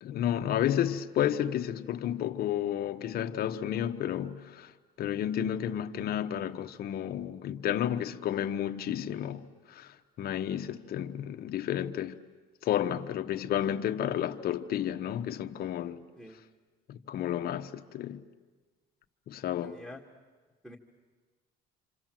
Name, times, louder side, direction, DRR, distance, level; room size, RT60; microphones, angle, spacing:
voice 1, 0.0-4.7 5.0-9.4 9.7-9.9 10.2-12.2 12.6-16.0 16.9-18.2 19.3-19.8, left 10 dB, 65° left, 1.2 m, -31 dB
voice 2, 19.6-20.0 20.6-20.8, left 1 dB, ahead, 1.8 m, -46 dB
28.5 x 26.0 x 7.6 m
cardioid pair, 110°, 17 cm